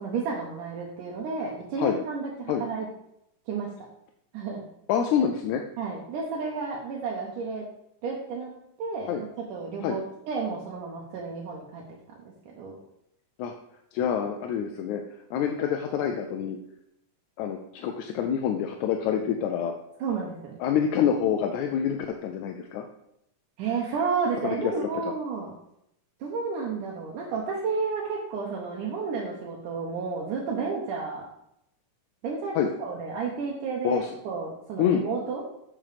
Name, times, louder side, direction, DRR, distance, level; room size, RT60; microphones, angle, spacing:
voice 1, 0.0-2.9 3.5-3.7 4.3-4.6 5.8-7.7 8.0-8.5 8.8-11.8 12.2-12.8 20.0-20.6 23.6-25.5 26.2-31.3 32.2-35.4, right 5 dB, 75° right, -2 dB, 2.6 m, -31 dB
voice 2, 4.9-5.6 9.1-9.2 9.8-10.0 13.4-13.5 13.9-16.6 17.4-19.7 20.6-22.8 24.4-24.6 25.0-25.1 32.6-32.7 33.8-34.2 34.8-35.1, left 8 dB, 75° left, 4 dB, 1.8 m, -27 dB
7.5 x 6.1 x 5.0 m, 0.78 s
omnidirectional pair, 3.8 m